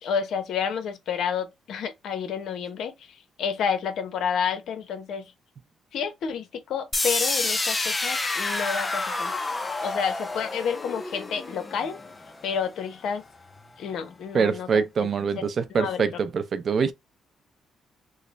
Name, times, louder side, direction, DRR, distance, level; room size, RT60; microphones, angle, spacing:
voice 1, 0.0-5.3 5.9-9.3 9.8-12.0 12.4-13.2 13.8-14.7 15.0-15.1 15.3-15.5 15.7-16.0, left 7 dB, 75° left, 0.7 m, -30 dB
sound 1, 6.9-12.9, left 3 dB, 25° left, 0.4 m, -29 dB
voice 2, 14.3-16.9, right 5 dB, 50° right, 0.5 m, -24 dB
3.2 x 2.1 x 3.9 m
cardioid pair, 90°, 0 cm